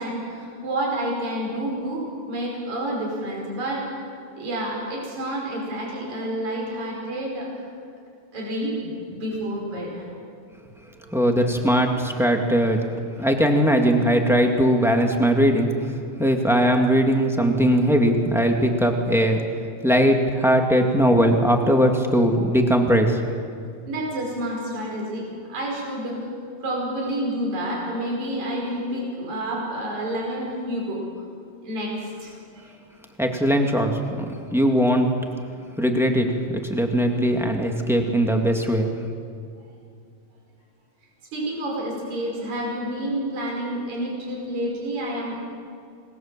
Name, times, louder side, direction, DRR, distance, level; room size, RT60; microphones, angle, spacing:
voice 1, 0.0-3.8 4.4-7.7 8.3-10.1 10.9-11.2 23.9-26.3 26.6-31.0 31.6-32.7 41.3-45.4, right 1 dB, 60° right, -2 dB, 6.4 m, -29 dB
voice 2, 11.1-12.8 13.2-15.9 16.2-19.4 19.8-23.2 33.2-34.2 34.5-35.1 35.8-38.9, equal, ahead, 2 dB, 1.4 m, -20 dB
27.0 x 20.5 x 7.5 m, 2.4 s
omnidirectional pair, 3.7 m